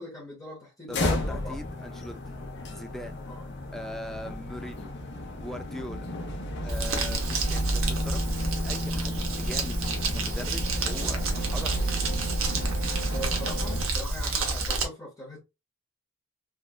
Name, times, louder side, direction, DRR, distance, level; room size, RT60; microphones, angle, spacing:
voice 1, 0.0-1.5 3.3-3.4 13.1-15.4, equal, 20° left, 1.0 m, -41 dB
sound 1, 0.9-13.9, equal, 60° left, 0.8 m, -32 dB
voice 2, 0.9-2.2 2.6-3.2 3.7-4.9 5.3-6.1 6.6-9.8 10.1-12.1, left 1 dB, ahead, 0.4 m, -41 dB
Crumpling crinkling, 6.7-14.8, right 2 dB, 90° right, 0.9 m, -30 dB
3.5 x 2.4 x 2.4 m
head